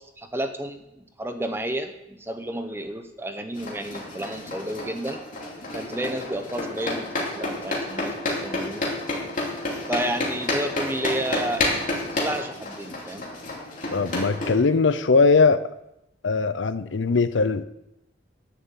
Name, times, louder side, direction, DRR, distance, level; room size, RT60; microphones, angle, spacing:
voice 1, 0.2-5.2 5.7-7.1 7.3-8.9 9.9-11.7 12.1-13.3, right 1 dB, 15° right, 7 dB, 0.9 m, -31 dB
sound 1, 3.6-14.5, left 2 dB, 45° left, 2.9 m, -30 dB
voice 2, 13.9-15.7 16.2-17.7, left 4 dB, 85° left, 14 dB, 0.6 m, -20 dB
11.0 x 7.3 x 7.4 m, 0.88 s
head